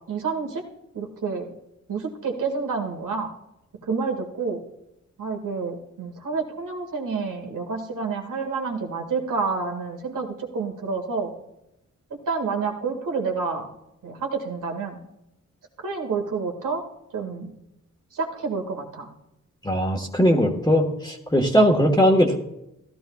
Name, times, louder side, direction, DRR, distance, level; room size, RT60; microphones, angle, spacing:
voice 1, 0.1-0.6 0.9-1.5 1.9-3.3 3.8-4.6 5.2-11.3 12.1-13.7 14.0-15.0 15.8-16.8 17.1-17.5 18.1-19.1, right 4 dB, 85° right, 2 dB, 1.9 m, -29 dB
voice 2, 19.6-22.4, equal, 15° left, -1 dB, 1.3 m, -19 dB
15.0 x 12.5 x 2.3 m, 0.89 s
cardioid pair, 65°, 31 cm